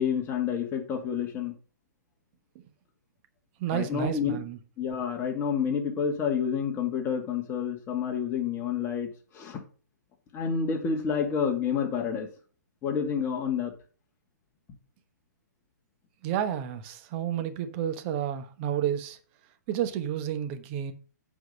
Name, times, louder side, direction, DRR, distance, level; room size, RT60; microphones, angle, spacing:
voice 1, 0.0-1.5 3.7-4.4 4.8-9.6 10.3-12.3 12.8-13.7, left 7 dB, 25° left, 2.2 m, -29 dB
voice 2, 3.6-4.6 16.2-19.2 19.7-20.9, right 10 dB, 35° right, 1.2 m, -30 dB
7.8 x 5.2 x 5.3 m
hypercardioid pair, 130°, 10 cm